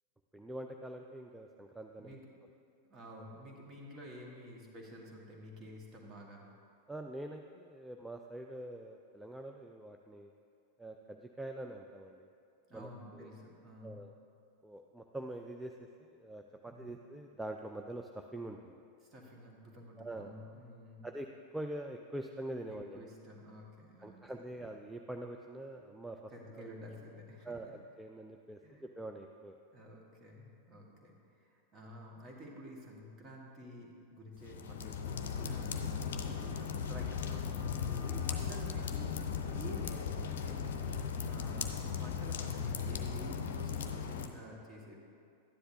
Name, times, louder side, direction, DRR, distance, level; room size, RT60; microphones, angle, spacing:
voice 1, 0.3-2.2 6.9-10.3 10.8-12.3 12.7-13.3 13.8-14.1 14.6-18.8 20.0-20.3 21.0-21.3 21.5-23.0 24.0-26.7 27.4-29.6 35.4-35.5 35.9-36.0 37.9-38.1, right 1 dB, 5° right, 3 dB, 0.4 m, -45 dB
voice 2, 2.0-2.3 2.9-6.5 12.7-14.0 16.6-17.0 19.0-21.1 22.7-24.2 24.6-24.7 26.3-27.7 28.6-28.8 29.7-45.0, equal, 25° right, -1 dB, 1.7 m, -51 dB
sound 1, 34.4-44.3, left 6 dB, 60° left, 0.6 m, -37 dB
12.0 x 9.9 x 2.7 m, 2.4 s
figure-of-eight pair, 90°, 0 cm